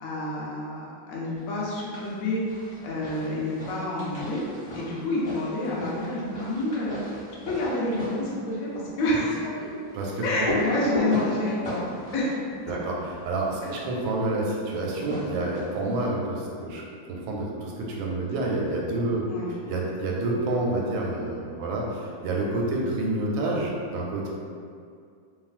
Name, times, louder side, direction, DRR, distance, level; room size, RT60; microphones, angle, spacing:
voice 1, 0.0-2.4 2.8-4.4 4.7-7.0 7.5-8.7 9.0-9.4 10.2-12.3 19.3-19.5, left 2 dB, 70° left, -6 dB, 0.8 m, -28 dB
sound 1, 1.6-2.2 2.5-13.5 14.7-15.9, equal, 35° left, 1.3 m, -35 dB
voice 2, 9.9-10.2 12.7-16.8 17.1-19.2 19.7-24.3, right 2 dB, 90° right, -2 dB, 1.4 m, -28 dB
3.1 x 2.4 x 2.4 m, 2.3 s
omnidirectional pair, 2.1 m